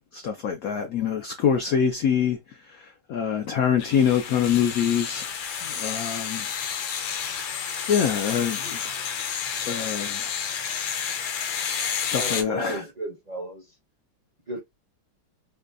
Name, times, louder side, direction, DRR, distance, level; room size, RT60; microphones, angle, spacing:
voice 1, 0.1-2.4 3.1-5.3 5.6-6.4 7.9-9.0 9.6-10.2 12.1-12.8, left 8 dB, 85° left, 0.7 m, -25 dB
sound 1, 3.8-12.4, left 7 dB, 65° left, 1.1 m, -30 dB
voice 2, 12.1-13.7 14.5-14.6, equal, 50° right, 0.5 m, -34 dB
5.0 x 2.3 x 2.5 m
omnidirectional pair, 2.2 m